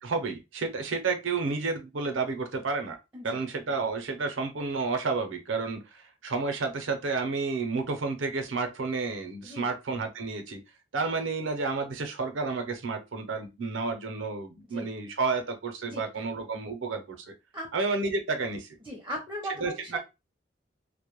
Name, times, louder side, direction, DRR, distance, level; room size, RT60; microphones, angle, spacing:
voice 1, 0.0-3.0 3.2-10.6 10.9-17.3 17.7-18.7 19.6-20.0, right 4 dB, 90° right, 0.6 m, -31 dB
voice 2, 15.9-16.2 17.5-17.7 18.8-19.9, equal, 10° right, 0.5 m, -38 dB
2.1 x 2.1 x 2.9 m
head